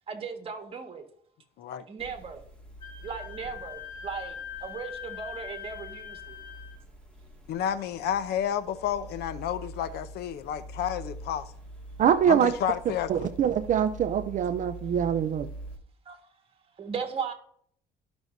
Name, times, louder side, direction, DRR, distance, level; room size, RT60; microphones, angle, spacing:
voice 1, 0.1-1.0 1.9-2.4 3.0-6.4 16.1-16.3 16.7-17.3, right 6 dB, 35° right, 1.7 m, -37 dB
sound 1, 2.0-15.8, right 1 dB, 5° left, 2.1 m, -45 dB
Wind instrument woodwind instrument, 2.8-6.8, left 9 dB, 25° left, 2.6 m, -42 dB
voice 2, 7.5-11.5 12.3-13.3, left 9 dB, 75° left, 0.6 m, -31 dB
voice 3, 12.0-12.5 13.1-15.5, right 8 dB, 50° right, 0.5 m, -24 dB
13.5 x 6.2 x 2.7 m
cardioid pair, 110°, 17 cm